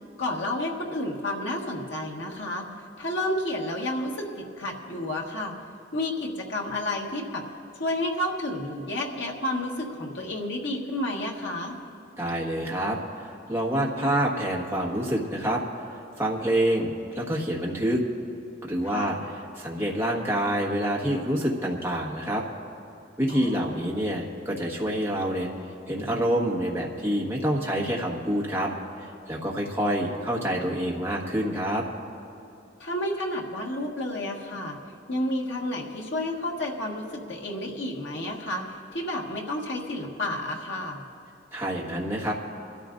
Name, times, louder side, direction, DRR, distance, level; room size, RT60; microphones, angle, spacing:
voice 1, 0.2-2.7 3.0-5.5 5.9-7.4 7.8-11.8 18.9-19.2 23.3-23.9 32.8-34.8 35.1-41.0, left 1 dB, 75° left, 0 dB, 1.6 m, -31 dB
voice 2, 12.2-15.6 16.2-18.0 18.6-22.4 23.2-25.5 25.9-28.7 29.3-31.8 41.5-42.3, right 1 dB, 15° right, -2 dB, 1.4 m, -27 dB
23.0 x 13.5 x 2.6 m, 2.8 s
head